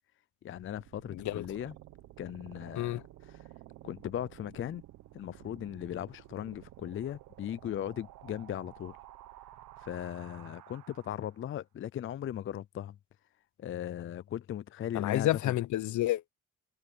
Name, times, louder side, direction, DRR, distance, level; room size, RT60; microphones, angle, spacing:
voice 1, 0.4-1.7 2.2-3.4 3.8-4.8 5.1-9.0 9.8-13.0 13.6-15.5, left 11 dB, 45° left, 0.5 m, -38 dB
sound 1, 0.5-11.5, right 14 dB, 80° right, 1.3 m, -53 dB
voice 2, 1.1-1.4 2.8-3.0 14.9-16.3, left 15 dB, 70° left, 0.8 m, -30 dB
cardioid pair, 90°, 30 cm